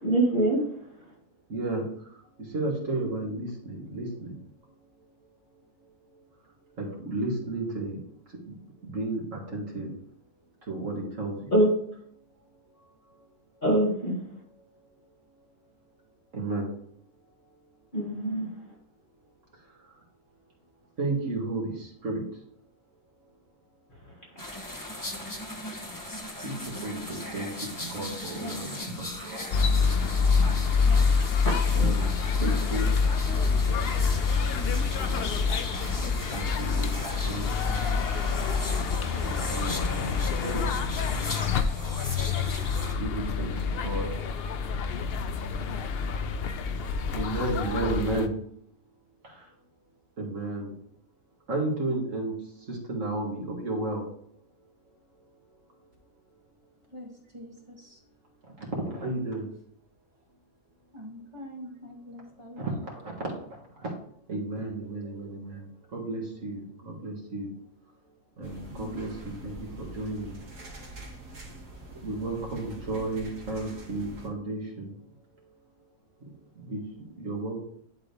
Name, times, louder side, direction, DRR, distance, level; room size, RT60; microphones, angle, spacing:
voice 1, 0.0-0.6 11.5-11.7 13.6-14.2 17.9-18.5 30.9-31.0 31.4-31.8 32.4-32.5, right 1 dB, 30° left, -5 dB, 2.1 m, -24 dB
voice 2, 1.5-1.8 2.5-4.3 6.8-8.0 8.5-8.6 8.8-9.9 10.7-11.4 16.3-16.7 21.0-22.2 26.4-26.6 26.8-27.5 27.8-29.4 31.7-32.1 32.4-32.9 36.3-36.9 37.3-37.5 39.2-40.9 43.0-43.6 43.8-44.1 47.1-48.3 50.2-50.7 51.5-52.3 52.7-54.0 58.9-59.5 62.6-63.1 63.8-63.9 64.3-65.7 65.9-67.5 68.4-70.4 72.0-74.9 76.6-76.8 77.2-77.6, right 2 dB, 55° right, -2 dB, 2.4 m, -32 dB
sound 1, 24.4-42.9, left 1 dB, 15° left, 0.8 m, -38 dB
sound 2, 29.5-48.3, left 5 dB, 65° left, 0.6 m, -27 dB
voice 3, 60.9-62.7 68.7-69.0, left 1 dB, 20° right, -1 dB, 1.4 m, -43 dB
sound 3, 68.4-74.3, right 2 dB, 80° right, 2.4 m, -44 dB
11.0 x 3.8 x 3.4 m, 0.66 s
omnidirectional pair, 1.7 m